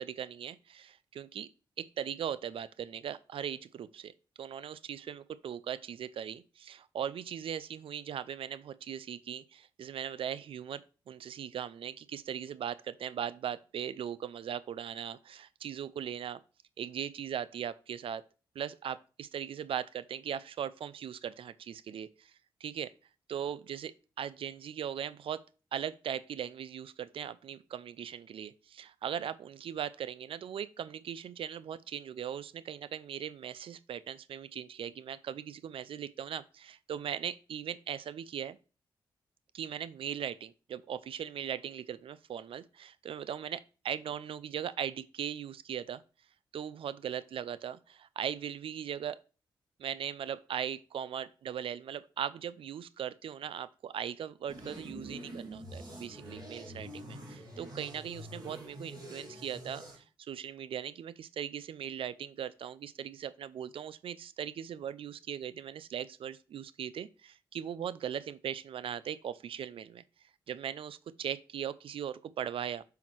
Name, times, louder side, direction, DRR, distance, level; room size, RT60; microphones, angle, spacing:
voice 1, 0.0-1.5 1.8-4.1 4.4-16.4 16.8-18.2 18.6-22.3 22.6-22.9 23.3-25.4 25.7-38.6 39.5-46.0 46.5-49.2 49.8-70.0 70.5-72.8, right 9 dB, 75° right, 0.5 m, -39 dB
sound 1, 54.5-60.0, equal, 45° right, 3.7 m, -46 dB
5.8 x 5.1 x 4.5 m
cardioid pair, 55°, 9 cm